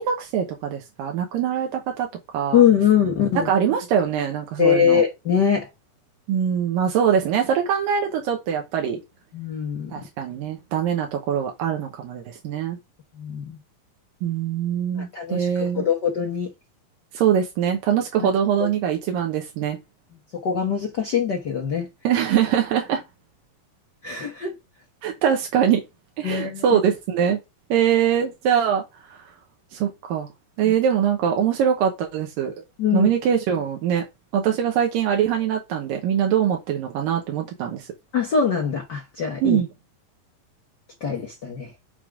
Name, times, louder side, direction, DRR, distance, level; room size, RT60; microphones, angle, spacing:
voice 1, 0.0-2.1 2.3-2.6 3.4-5.0 6.3-9.0 9.9-12.8 14.2-15.8 17.1-19.8 22.0-23.0 25.0-25.8 26.2-27.4 27.7-28.8 29.1-29.2 29.7-30.3 30.6-32.5 32.9-34.0 34.3-37.9 39.4-39.7, right 8 dB, 85° right, 2.7 m, -23 dB
voice 2, 2.5-3.5 4.6-5.7 9.3-10.0 13.2-13.6 15.0-16.5 18.6-18.7 20.4-21.9 24.0-24.5 26.2-26.8 30.6-30.7 32.8-33.1 38.1-39.6 41.0-41.7, left 8 dB, 85° left, 0.9 m, -22 dB
8.2 x 3.6 x 5.1 m
omnidirectional pair, 3.9 m